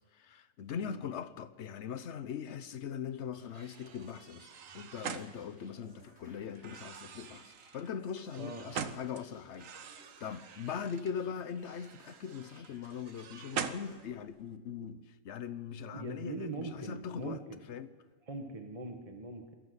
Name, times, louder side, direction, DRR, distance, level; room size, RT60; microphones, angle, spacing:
voice 1, 0.1-17.4 17.7-17.9, left 7 dB, 60° left, 1.1 m, -41 dB
sound 1, 3.3-14.0, equal, 45° right, 6.9 m, -62 dB
sound 2, 3.5-6.0 6.5-9.2 9.5-11.1 11.5-14.4, right 8 dB, 80° right, 1.3 m, -44 dB
voice 2, 15.9-17.6 18.3-19.5, right 3 dB, 30° right, 1.4 m, -41 dB
23.0 x 14.0 x 8.0 m
omnidirectional pair, 1.4 m